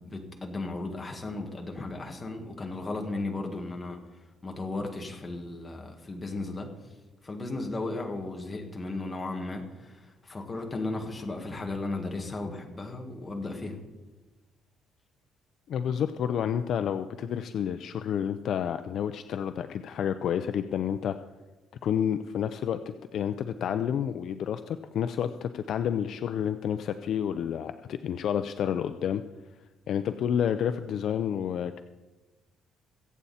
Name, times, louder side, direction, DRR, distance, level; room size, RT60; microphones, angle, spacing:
voice 1, 0.0-6.7 7.2-13.8, left 2 dB, 15° left, 2 dB, 1.9 m, -35 dB
voice 2, 15.7-21.2 21.8-29.2 29.9-31.8, left 8 dB, 50° left, 9 dB, 0.5 m, -30 dB
23.0 x 8.6 x 4.3 m, 1.1 s
cardioid pair, 160°, 0 cm